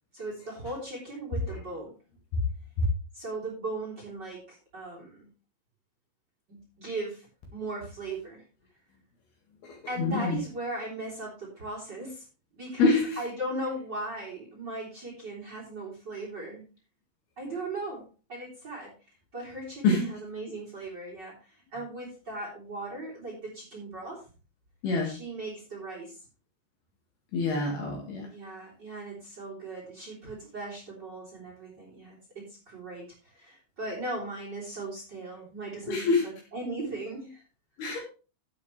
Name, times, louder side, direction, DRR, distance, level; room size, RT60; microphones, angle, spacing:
voice 1, 0.1-1.9 3.1-5.3 6.5-7.3 7.5-8.4 9.9-12.2 12.5-16.6 17.4-18.9 19.3-24.3 25.0-26.2 28.3-37.4, right 2 dB, 25° right, -3 dB, 3.3 m, -38 dB
voice 2, 9.6-10.4 12.8-13.2 19.8-20.1 24.8-25.1 27.3-28.3 35.9-36.2 37.8-38.0, left 3 dB, 60° left, 0 dB, 3.5 m, -26 dB
12.5 x 8.5 x 3.3 m, 0.35 s
omnidirectional pair, 5.8 m